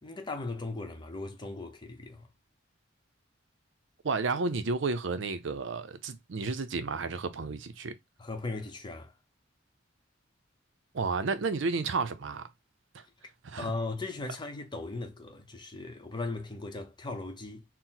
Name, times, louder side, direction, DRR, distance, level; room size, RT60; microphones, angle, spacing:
voice 1, 0.0-2.2 8.2-9.1 13.6-17.6, left 3 dB, 20° left, 0.8 m, -38 dB
voice 2, 4.0-7.9 10.9-12.4 12.9-13.0 13.4-13.7, right 4 dB, 65° right, 0.5 m, -31 dB
4.4 x 2.0 x 3.9 m
head